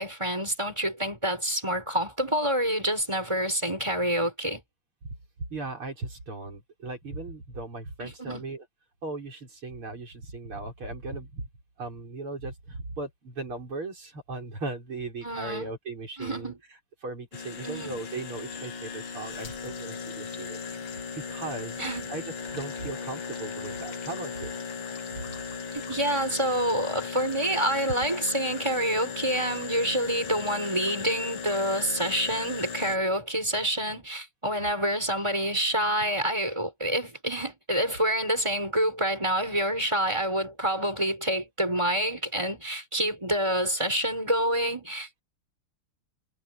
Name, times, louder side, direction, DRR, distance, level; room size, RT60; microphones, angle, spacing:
voice 1, 0.0-4.6 8.0-8.5 15.2-15.7 16.2-16.6 17.6-18.0 21.8-22.1 25.7-45.2, equal, 10° right, 6.3 m, -27 dB
voice 2, 5.5-8.6 9.0-11.5 11.8-16.5 17.0-20.9 21.2-24.6 25.1-25.3, right 3 dB, 75° right, 7.0 m, -37 dB
sound 1, 17.3-33.0, left 6 dB, 65° left, 2.5 m, -37 dB
omnidirectional pair, 2.4 m